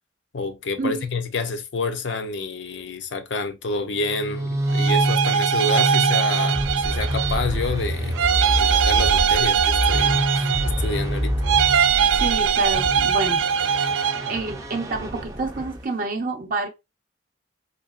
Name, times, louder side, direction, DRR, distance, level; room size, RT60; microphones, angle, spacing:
voice 1, 0.3-8.2 8.6-11.4, left 3 dB, 70° left, 0.6 m, -28 dB
sound 1, 4.0-15.8, right 1 dB, 20° right, 0.5 m, -26 dB
sound 2, 4.7-7.5 8.1-11.0 11.4-14.4, right 8 dB, 90° right, 0.3 m, -21 dB
voice 2, 12.1-13.4 13.7-13.8 14.3-16.7, right 3 dB, 50° right, 0.8 m, -28 dB
4.0 x 2.9 x 2.4 m
head